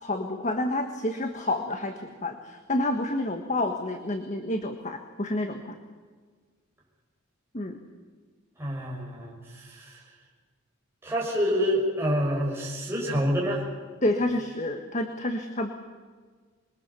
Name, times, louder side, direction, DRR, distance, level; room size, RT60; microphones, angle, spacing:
voice 1, 0.0-5.7 7.5-7.8 14.0-15.7, left 1 dB, 35° left, 6 dB, 1.5 m, -29 dB
voice 2, 8.6-10.0 11.0-13.7, equal, 10° right, -3 dB, 6.3 m, -27 dB
26.5 x 22.0 x 7.1 m, 1.5 s
head